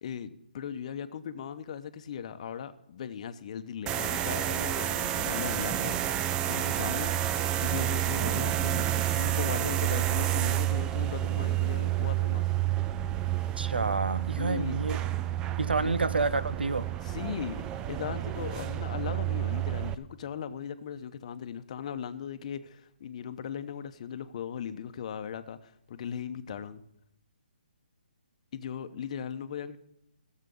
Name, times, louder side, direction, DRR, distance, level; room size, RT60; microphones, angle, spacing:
voice 1, 0.0-7.2 7.6-12.4 14.4-14.8 15.8-15.9 17.0-26.8 28.5-29.8, left 8 dB, 40° left, 0.8 m, -38 dB
sound 1, 3.9-19.9, right 12 dB, 15° right, 0.4 m, -29 dB
voice 2, 13.6-15.0 15.6-16.9, right 3 dB, 90° right, 0.7 m, -29 dB
14.0 x 7.4 x 6.9 m
hypercardioid pair, 150°, 5 cm